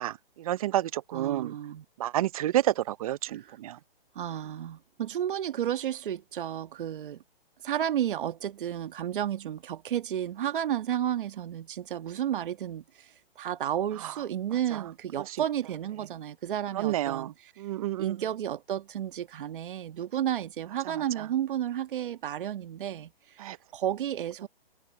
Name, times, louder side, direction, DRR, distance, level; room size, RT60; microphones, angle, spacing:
voice 1, 0.0-1.5 2.0-3.8 16.8-17.3 17.6-18.1 23.4-23.6, right 13 dB, 35° right, 0.7 m, -29 dB
voice 2, 1.1-1.8 3.3-3.6 4.1-7.2 7.6-17.5 18.0-23.4 23.7-24.5, right 10 dB, 55° right, 1.6 m, -32 dB
hypercardioid pair, 145°, 31 cm